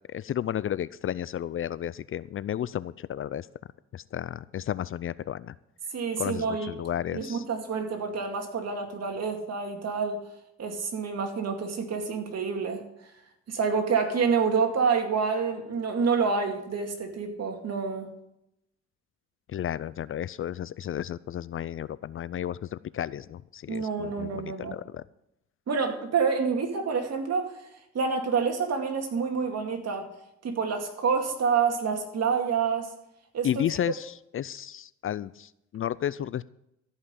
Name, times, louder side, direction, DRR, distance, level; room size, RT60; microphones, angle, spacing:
voice 1, 0.1-3.5 3.9-5.5 6.2-7.4 19.5-25.0 33.4-36.4, left 10 dB, 45° left, 18 dB, 0.4 m, -32 dB
voice 2, 5.9-6.7 7.1-10.2 10.6-12.8 13.5-18.1 23.7-24.8 25.7-27.5 27.9-30.1 30.4-32.9 33.3-33.5, right 5 dB, 55° right, 4 dB, 2.4 m, -28 dB
14.0 x 5.7 x 8.2 m, 0.81 s
cardioid pair, 90°, 30 cm